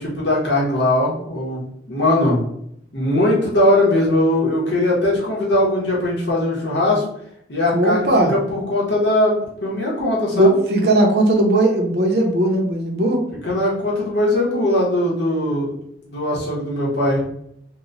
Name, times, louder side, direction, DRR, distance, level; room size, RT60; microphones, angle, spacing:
voice 1, 0.0-2.4 2.9-7.0 7.5-9.3 9.6-10.6 13.4-15.7 16.0-17.2, left 1 dB, 80° left, -5 dB, 1.0 m, -20 dB
voice 2, 7.7-8.3 10.3-13.2, right 1 dB, 60° right, 2 dB, 0.7 m, -17 dB
3.0 x 2.1 x 3.8 m, 0.73 s
head